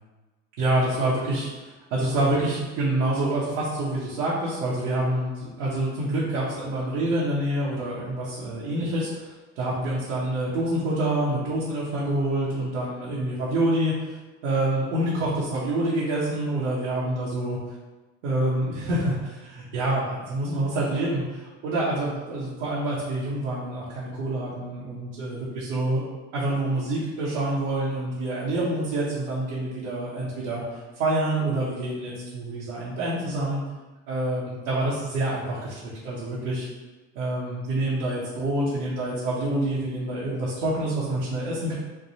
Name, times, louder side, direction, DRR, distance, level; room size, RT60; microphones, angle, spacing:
voice 1, 0.6-14.1 14.4-17.6 18.2-26.0 26.3-30.6 31.0-33.6 34.1-36.7 37.1-41.7, right 1 dB, 85° right, -8 dB, 1.1 m, -27 dB
3.5 x 2.2 x 4.1 m, 1.2 s
supercardioid pair, 100°, 36 cm